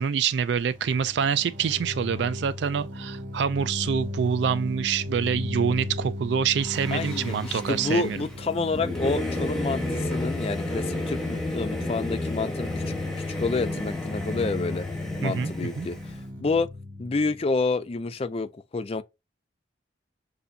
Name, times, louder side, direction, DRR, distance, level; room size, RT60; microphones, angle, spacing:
voice 1, 0.0-8.3 15.2-15.9, right 7 dB, 65° right, 0.3 m, -26 dB
sound 1, 0.6-18.2, left 1 dB, 45° right, 3.0 m, -37 dB
Singing / Musical instrument, 6.6-16.2, left 2 dB, 5° left, 1.1 m, -32 dB
voice 2, 6.9-12.9 13.4-14.9 15.2-16.7 17.0-19.0, left 3 dB, 30° left, 0.4 m, -29 dB
6.7 x 2.7 x 2.7 m
head